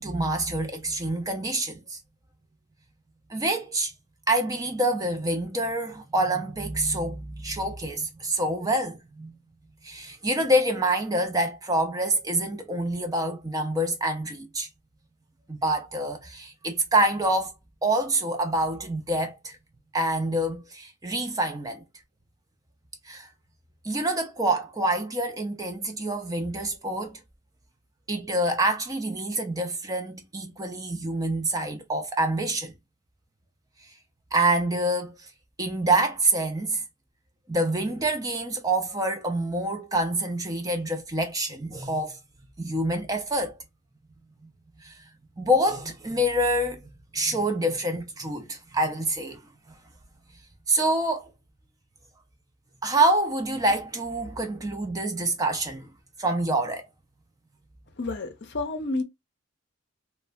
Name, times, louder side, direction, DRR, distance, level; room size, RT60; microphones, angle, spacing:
voice 1, 0.0-2.0 3.3-3.9 4.3-9.4 9.8-14.7 15.5-17.5 17.8-19.6 19.9-21.8 23.0-23.3 23.8-27.2 28.1-32.7 34.3-35.1 35.6-36.8 37.5-42.2 42.6-43.5 44.8-45.0 45.4-46.8 47.1-49.4 50.7-51.3 52.8-55.9 56.2-56.9, right 1 dB, 15° right, 0.4 m, -26 dB
voice 2, 58.0-59.0, left 2 dB, 50° left, 0.5 m, -30 dB
3.1 x 2.1 x 2.4 m
head